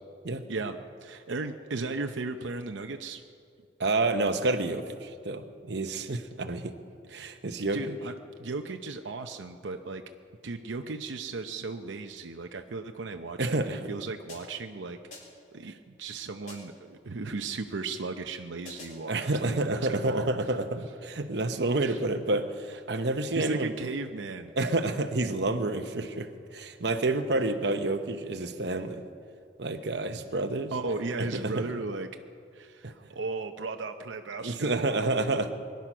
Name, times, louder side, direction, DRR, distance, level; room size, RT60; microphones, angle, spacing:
voice 1, 0.5-3.2 7.7-8.1 8.4-10.0 10.4-15.0 15.5-20.3 21.8-22.0 23.2-24.5 30.7-32.1 32.5-35.1, right 3 dB, 90° right, 6 dB, 0.7 m, -36 dB
voice 2, 3.8-6.7 7.1-8.0 13.4-13.9 15.6-15.7 19.1-23.9 24.6-29.0 29.6-30.7 31.3-31.7 32.8-32.9 34.4-35.5, right 2 dB, 65° right, 8 dB, 0.9 m, -29 dB
sound 1, 14.3-14.7 15.1-15.5 16.5-16.9 18.6-19.1, left 2 dB, 45° left, 4.3 m, -48 dB
22.0 x 10.5 x 6.1 m, 2.4 s
head